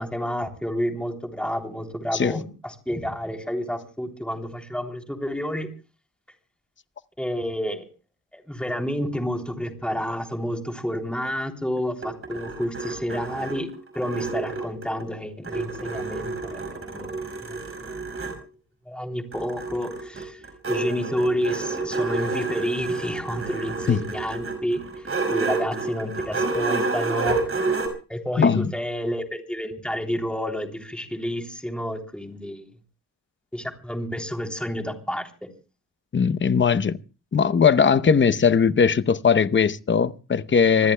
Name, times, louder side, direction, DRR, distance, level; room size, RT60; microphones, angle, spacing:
voice 1, 0.0-5.7 7.2-7.8 8.3-17.6 18.9-20.4 20.7-24.8 25.3-27.4 28.1-32.7 33.5-35.3, equal, 5° left, 3.2 m, -30 dB
sound 1, 11.8-15.1 15.4-18.4 19.3-27.9, right 3 dB, 40° right, 5.4 m, -29 dB
voice 2, 28.4-28.7 36.1-37.0 37.3-40.9, left 6 dB, 35° left, 0.7 m, -19 dB
27.0 x 20.0 x 2.2 m
wide cardioid pair, 145°, 32 cm